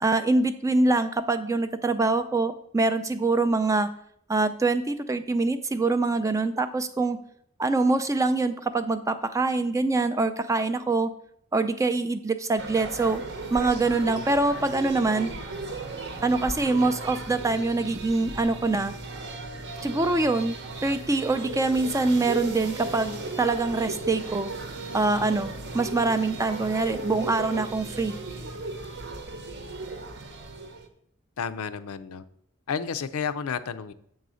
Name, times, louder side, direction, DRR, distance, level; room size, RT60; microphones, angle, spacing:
voice 1, 0.0-3.9 4.3-7.2 7.6-11.1 11.5-13.2 13.5-15.3 16.2-18.9 19.8-24.5 24.9-28.2, right 3 dB, 15° right, 10 dB, 0.3 m, -24 dB
sound 1, 12.6-30.9, right 3 dB, 55° right, 0.8 m, -36 dB
voice 2, 31.4-32.2 32.7-33.9, left 6 dB, 85° left, 11 dB, 0.5 m, -31 dB
7.5 x 4.0 x 6.2 m, 0.69 s
head